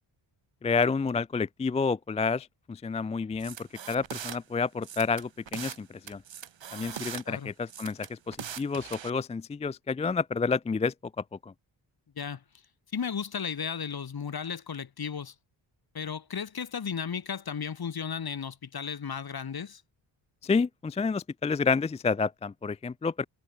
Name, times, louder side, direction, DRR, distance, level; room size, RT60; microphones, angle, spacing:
voice 1, 0.6-3.6 3.9-6.2 6.7-10.9 11.4-11.5 20.4-23.2, left 4 dB, 15° left, 0.3 m, -29 dB
sound 1, 3.4-4.4 4.8-5.8 6.1-7.2 7.7-9.1, right 8 dB, 60° right, 2.1 m, -40 dB
voice 2, 12.9-15.3 15.9-19.8, left 7 dB, 50° left, 1.9 m, -34 dB
cardioid pair, 60°, 49 cm